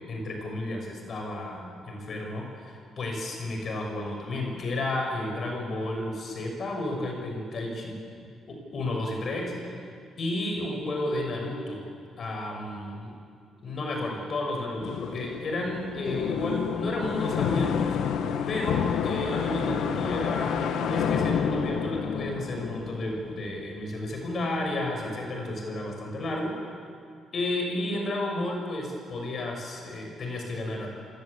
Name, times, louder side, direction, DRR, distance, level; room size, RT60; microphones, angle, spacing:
voice 1, 0.1-7.9 8.5-9.7 10.2-11.8 12.2-13.1 13.6-18.0 18.5-26.5 27.3-30.9, left 1 dB, 50° left, 1 dB, 6.3 m, -32 dB
sound 1, 14.8-23.6, left 7 dB, 80° left, 1.6 m, -29 dB
27.0 x 17.0 x 8.6 m, 2.3 s
cardioid pair, 90°, 0 cm